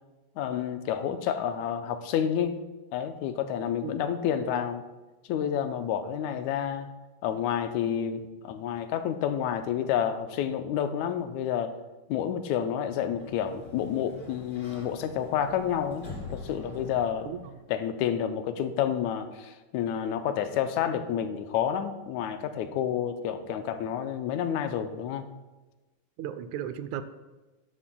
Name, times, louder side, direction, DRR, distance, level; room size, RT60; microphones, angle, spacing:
voice 1, 0.4-2.6 2.9-4.8 5.3-6.9 7.2-11.7 12.1-17.3 17.7-25.3, left 9 dB, 85° left, 8 dB, 2.0 m, -29 dB
Sliding door, 12.8-17.7, left 3 dB, 30° left, 3.1 m, -45 dB
voice 2, 26.2-27.0, right 10 dB, 85° right, 12 dB, 2.0 m, -35 dB
13.0 x 11.0 x 2.3 m, 1.2 s
omnidirectional pair, 3.3 m